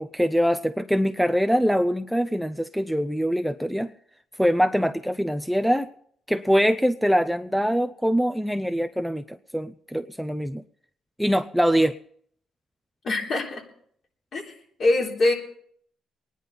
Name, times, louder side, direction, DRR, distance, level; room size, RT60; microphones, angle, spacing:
voice 1, 0.0-3.9 4.4-5.9 6.3-10.6 11.2-12.0, equal, ahead, 9 dB, 0.5 m, -23 dB
voice 2, 13.0-13.6 14.3-14.5 14.8-15.3, left 2 dB, 55° left, -1 dB, 3.5 m, -23 dB
23.5 x 10.0 x 4.1 m, 0.64 s
cardioid pair, 90°, 0 cm